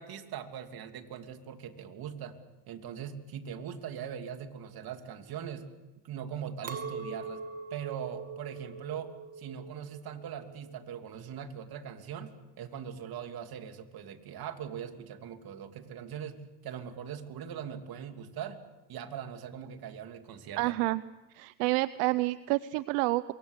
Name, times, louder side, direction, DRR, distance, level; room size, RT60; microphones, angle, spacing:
voice 1, 0.0-2.4 2.7-5.7 6.0-7.4 7.7-18.6 18.9-20.7, right 8 dB, 45° right, 7 dB, 2.9 m, -41 dB
Chink clink, 6.6-12.0, right 5 dB, 30° right, 2.9 m, -43 dB
voice 2, 20.6-21.0 21.3-23.3, right 20 dB, 75° right, 16 dB, 0.9 m, -28 dB
27.0 x 23.0 x 8.2 m, 1.1 s
supercardioid pair, 100°, 49 cm